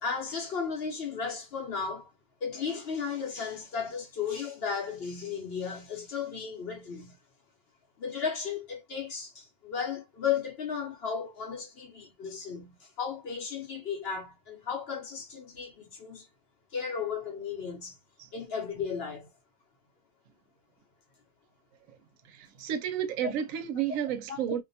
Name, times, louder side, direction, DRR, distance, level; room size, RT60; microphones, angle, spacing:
voice 1, 0.0-2.1 2.4-7.2 8.0-16.3 16.7-18.0 18.3-19.3 23.2-23.3 24.3-24.4, left 6 dB, 55° left, 0.8 m, -35 dB
voice 2, 22.2-24.6, right 9 dB, 75° right, 0.9 m, -32 dB
2.5 x 2.2 x 2.6 m
omnidirectional pair, 1.5 m